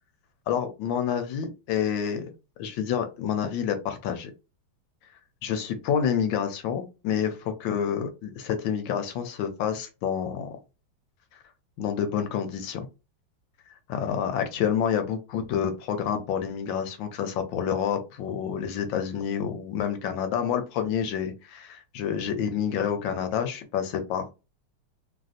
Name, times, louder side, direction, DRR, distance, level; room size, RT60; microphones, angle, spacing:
voice 1, 0.5-2.2 2.6-4.3 5.4-10.5 11.8-12.9 13.9-24.3, left 8 dB, 75° left, 7 dB, 1.2 m, -28 dB
3.3 x 2.6 x 2.4 m, 0.29 s
omnidirectional pair, 2.3 m